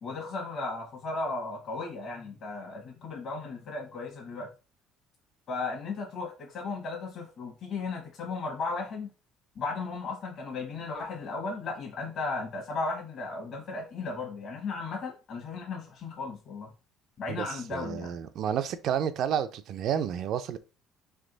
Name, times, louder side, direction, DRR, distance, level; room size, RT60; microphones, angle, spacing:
voice 1, 0.0-4.5 5.5-9.1 9.5-16.7 17.2-18.1, left 3 dB, 50° left, 1.1 m, -35 dB
voice 2, 17.3-20.6, right 9 dB, 60° right, 0.4 m, -30 dB
3.4 x 3.1 x 3.9 m
cardioid pair, 130°, 0 cm